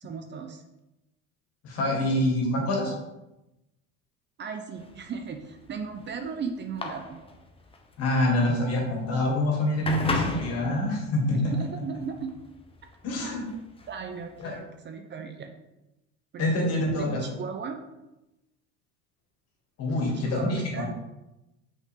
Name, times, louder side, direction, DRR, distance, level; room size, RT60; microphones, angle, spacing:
voice 1, 0.0-0.6 4.4-7.2 11.4-12.3 13.9-15.5 16.3-17.8 20.0-20.9, right 5 dB, 35° right, 5 dB, 0.7 m, -37 dB
voice 2, 1.6-2.9 8.0-11.4 13.0-13.4 14.4-14.5 16.4-17.3 19.8-20.8, left 1 dB, 50° left, -1 dB, 2.5 m, -26 dB
sound 1, 4.8-14.6, left 3 dB, 20° left, 0.9 m, -36 dB
5.9 x 5.3 x 3.8 m, 0.95 s
supercardioid pair, 110°, 31 cm